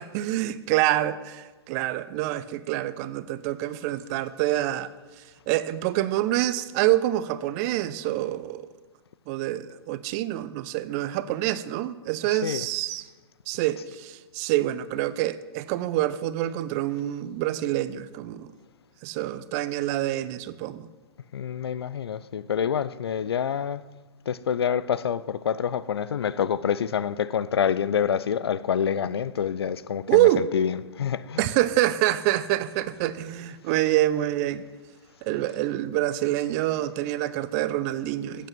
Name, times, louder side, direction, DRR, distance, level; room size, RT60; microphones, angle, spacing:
voice 1, 0.0-4.9 5.5-8.7 9.3-13.0 13.5-18.5 19.0-20.9 30.1-30.5 31.4-34.6 35.2-38.5, right 14 dB, 40° right, 0.7 m, -26 dB
voice 2, 12.2-12.7 13.8-13.9 21.3-23.8 24.3-31.6 33.7-33.9, left 8 dB, 70° left, 0.5 m, -27 dB
15.0 x 8.3 x 6.1 m
figure-of-eight pair, 110°, 14 cm